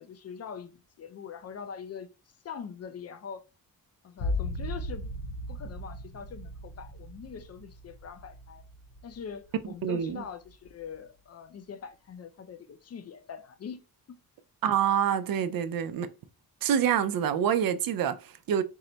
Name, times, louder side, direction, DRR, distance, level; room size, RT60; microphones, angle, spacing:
voice 1, 0.0-2.1 2.4-3.4 4.0-5.1 5.5-8.6 9.0-13.8 14.1-14.2, left 7 dB, 45° left, 0.5 m, -43 dB
sound 1, 4.2-9.6 10.1-10.7, left 1 dB, 60° left, 0.9 m, -37 dB
voice 2, 9.8-10.2 14.6-16.1 16.6-18.6, right 9 dB, 70° right, 0.6 m, -26 dB
4.5 x 2.1 x 3.9 m
wide cardioid pair, 140°, 35 cm